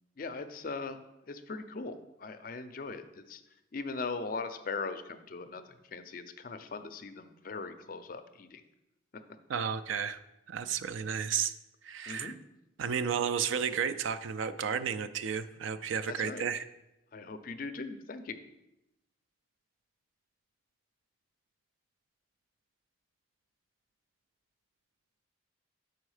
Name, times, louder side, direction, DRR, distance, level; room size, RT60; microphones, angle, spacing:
voice 1, 0.2-1.0 1.3-3.4 3.7-8.6 12.1-12.4 16.1-16.5 17.1-18.4, left 4 dB, 45° left, 9 dB, 0.4 m, -40 dB
voice 2, 9.5-10.2 10.5-11.5 11.8-12.3 12.8-16.6, right 7 dB, 75° right, 13 dB, 0.4 m, -32 dB
6.2 x 4.5 x 4.8 m, 0.92 s
head